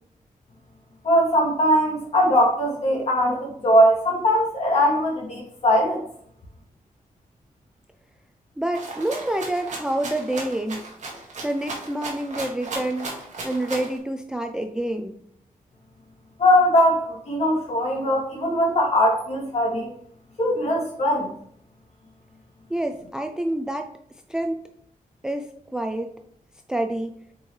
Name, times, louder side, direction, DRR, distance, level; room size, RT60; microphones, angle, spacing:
voice 1, 1.0-6.0 16.4-19.9 20.4-21.3, equal, 45° left, -2 dB, 2.2 m, -20 dB
voice 2, 8.6-10.8 11.4-13.1 13.4-15.1 22.7-23.9 24.3-24.6 25.2-26.1 26.7-27.1, right 1 dB, 5° right, 6 dB, 0.3 m, -27 dB
Rattle (instrument), 8.7-14.0, right 3 dB, 55° right, 1.9 m, -35 dB
7.8 x 4.5 x 3.2 m, 0.68 s
wide cardioid pair, 170°, 15 cm